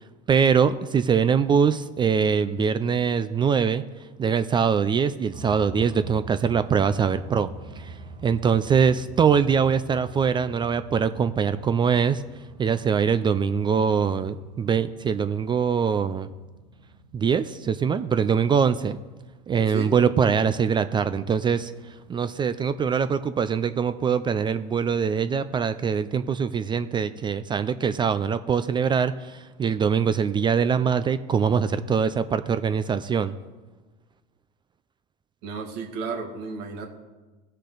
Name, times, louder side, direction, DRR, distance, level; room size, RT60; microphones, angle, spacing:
voice 1, 0.3-3.8 4.2-12.2 12.6-16.3 17.1-19.0 19.5-33.3, right 6 dB, 25° right, 12 dB, 0.4 m, -23 dB
sound 1, 5.3-25.1, right 2 dB, 90° right, 3.5 m, -46 dB
voice 2, 19.6-19.9 35.4-36.9, right 5 dB, 70° right, 2 dB, 2.2 m, -33 dB
17.0 x 6.5 x 3.9 m, 1.2 s
supercardioid pair, 105°, 19 cm